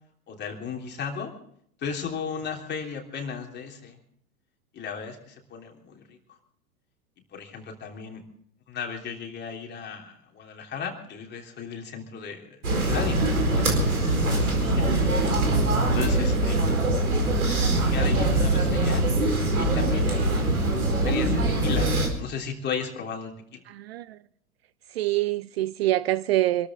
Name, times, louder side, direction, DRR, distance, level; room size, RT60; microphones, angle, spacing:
voice 1, 0.3-1.3 1.8-4.0 4.7-6.2 7.3-8.2 8.7-15.3 15.6-16.6 17.7-19.0 19.5-20.5 21.0-21.9 22.2-23.6, left 6 dB, 25° left, 3.4 m, -36 dB
sound 1, 12.6-22.1, right 2 dB, 75° right, 4.5 m, -23 dB
voice 2, 23.7-24.2 24.9-26.7, right 15 dB, 45° right, 0.5 m, -25 dB
26.0 x 13.0 x 3.7 m
figure-of-eight pair, 90°, 44 cm